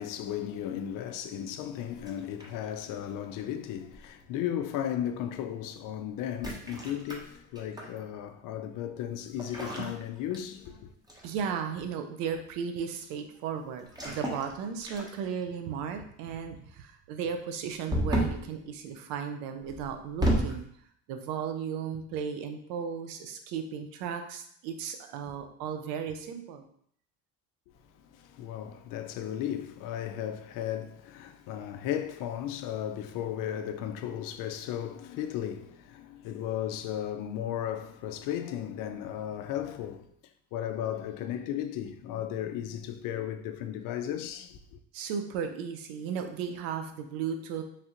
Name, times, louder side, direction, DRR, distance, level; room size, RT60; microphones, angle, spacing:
voice 1, 0.0-10.9 27.9-40.1 40.5-44.8, left 10 dB, 60° left, 0.4 m, -35 dB
sound 1, 2.0-2.7 3.9-4.2 6.3-8.0 9.4-10.8 11.1-11.4 13.9-14.5 14.9-15.4 17.9-18.5 19.7-20.6, right 1 dB, 10° right, 0.8 m, -32 dB
voice 2, 11.2-20.7 21.1-26.6 44.9-47.6, right 7 dB, 75° right, 0.6 m, -35 dB
3.3 x 2.4 x 2.8 m
supercardioid pair, 75°, 36 cm